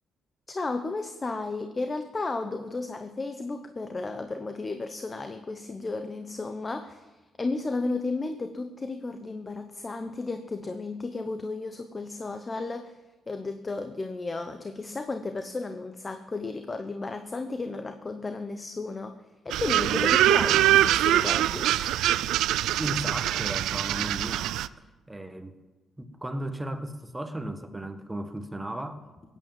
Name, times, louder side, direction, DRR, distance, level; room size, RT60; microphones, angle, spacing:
voice 1, 0.5-13.0 13.3-21.7, left 3 dB, 30° left, 7 dB, 0.9 m, -33 dB
sound 1, 19.5-24.7, right 13 dB, 85° right, 0.4 m, -23 dB
voice 2, 22.8-24.5 25.1-25.6 26.0-29.1, right 1 dB, 10° right, 8 dB, 1.4 m, -35 dB
16.5 x 9.4 x 7.5 m, 1.1 s
cardioid pair, 90°, 0 cm